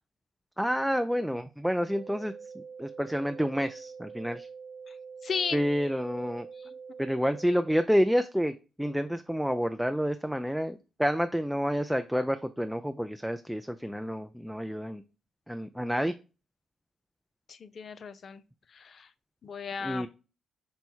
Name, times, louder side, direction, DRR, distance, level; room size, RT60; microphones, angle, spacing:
voice 1, 0.6-4.5 5.5-6.5 7.0-15.0 15.5-16.1 19.8-20.1, equal, ahead, 0.4 m, -29 dB
sound 1, 1.9-7.9, right 5 dB, 70° right, 0.6 m, -45 dB
voice 2, 5.2-5.6 6.6-6.7 17.5-18.4 18.7-19.1 19.4-20.1, left 6 dB, 55° left, 0.5 m, -35 dB
5.4 x 2.2 x 4.5 m
supercardioid pair, 50°, 0 cm